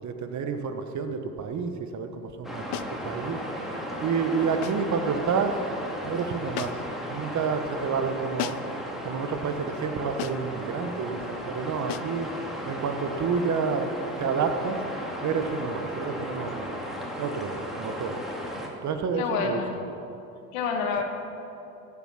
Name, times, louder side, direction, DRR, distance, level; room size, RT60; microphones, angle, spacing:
voice 1, 0.0-3.4 4.0-5.6 6.0-8.5 9.0-12.3 12.7-13.9 14.2-14.8 15.2-16.7 17.2-18.2 18.8-19.6, right 5 dB, 45° right, 7 dB, 1.2 m, -29 dB
sound 1, 2.4-18.7, equal, ahead, 2.3 m, -35 dB
sound 2, 2.7-3.0 4.6-4.9 6.5-7.0 8.4-8.8 10.2-10.5 11.9-12.2, left 15 dB, 55° left, 0.5 m, -35 dB
voice 2, 19.2-19.8 20.5-21.0, left 5 dB, 80° left, 3 dB, 1.9 m, -28 dB
14.0 x 7.6 x 5.9 m, 2.9 s
supercardioid pair, 85°, 40 cm